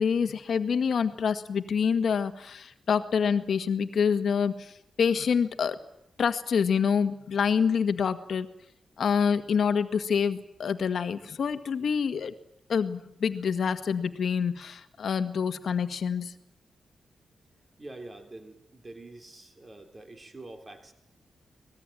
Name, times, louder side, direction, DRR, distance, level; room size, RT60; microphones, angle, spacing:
voice 1, 0.0-5.8 6.2-8.5 9.0-12.3 12.7-16.3, left 6 dB, 55° left, 9 dB, 1.7 m, -26 dB
voice 2, 17.8-20.9, right 2 dB, 20° right, 5 dB, 3.4 m, -45 dB
24.5 x 19.0 x 9.1 m, 0.78 s
wide cardioid pair, 180°, 0 cm